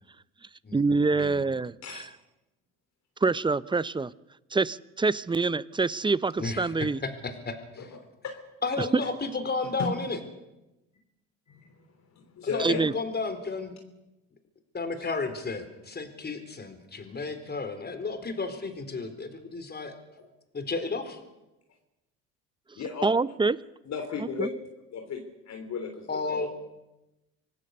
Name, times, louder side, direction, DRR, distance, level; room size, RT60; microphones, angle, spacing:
voice 1, 0.7-2.1 3.2-4.1 4.5-7.0 8.8-8.9 12.6-12.9 23.0-23.6 24.2-24.5, right 3 dB, 15° right, 19 dB, 0.6 m, -26 dB
voice 2, 6.4-8.0 8.6-10.2 12.4-13.7 14.7-19.9 20.5-21.2 26.1-26.5, left 3 dB, 25° left, 8 dB, 4.3 m, -33 dB
voice 3, 12.2-12.9 15.0-15.1 22.8-23.2 23.9-24.6 24.9-26.5, left 5 dB, 50° left, 4 dB, 3.3 m, -35 dB
25.5 x 17.5 x 6.7 m, 0.98 s
hypercardioid pair, 70°, 36 cm